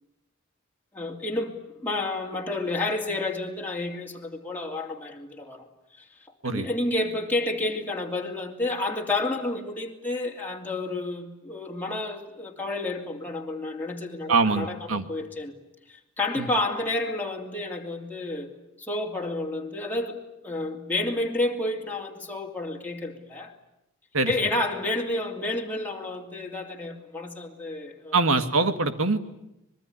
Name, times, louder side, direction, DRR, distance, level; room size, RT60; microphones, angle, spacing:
voice 1, 0.9-5.7 6.0-6.1 6.4-15.6 15.9-18.5 18.8-23.5 24.2-28.2, left 2 dB, 10° left, 2.7 m, -30 dB
voice 2, 14.3-15.1 16.4-16.5 24.1-24.3 28.1-29.2, right 3 dB, 65° right, 1.9 m, -23 dB
25.0 x 22.0 x 10.0 m
head